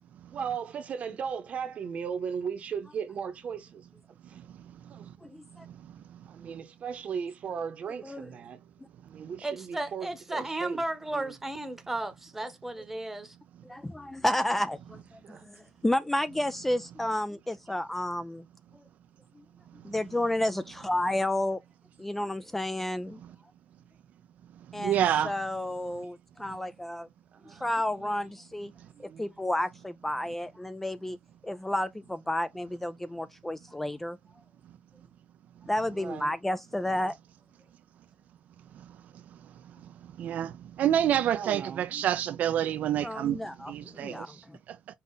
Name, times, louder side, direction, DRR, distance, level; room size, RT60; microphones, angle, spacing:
voice 1, 0.3-4.4 4.9-5.1 6.3-8.6 9.0-10.8 11.1-11.4 15.2-15.4 27.3-28.3 28.9-29.3 35.9-36.3 37.0-37.1 41.3-41.9, right 7 dB, 50° right, 0.9 m, -37 dB
voice 2, 5.2-5.7 8.0-8.3 13.6-18.4 19.4-19.5 19.8-21.6 22.0-23.2 24.7-27.1 27.5-28.7 29.0-31.2 31.4-34.2 35.7-37.1 43.0-44.3, left 1 dB, 10° left, 0.3 m, -31 dB
voice 3, 9.4-13.4, right 2 dB, 10° right, 1.0 m, -34 dB
voice 4, 24.8-25.3 40.2-43.4 43.7-44.1, right 10 dB, 70° right, 0.4 m, -27 dB
5.5 x 2.4 x 3.9 m
cardioid pair, 135°, 3 cm